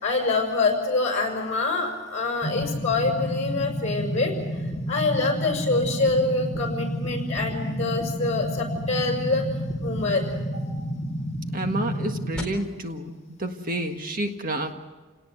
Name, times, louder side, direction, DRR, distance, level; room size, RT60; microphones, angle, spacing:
voice 1, 0.0-4.3 4.9-9.4 9.8-10.2 10.5-10.6, left 3 dB, 35° left, 2 dB, 6.2 m, -25 dB
sound 1, 2.4-12.4, equal, 5° left, 3.9 m, -30 dB
voice 2, 11.5-14.7, right 1 dB, 45° right, 5 dB, 1.6 m, -29 dB
29.5 x 18.5 x 8.0 m, 1.3 s
head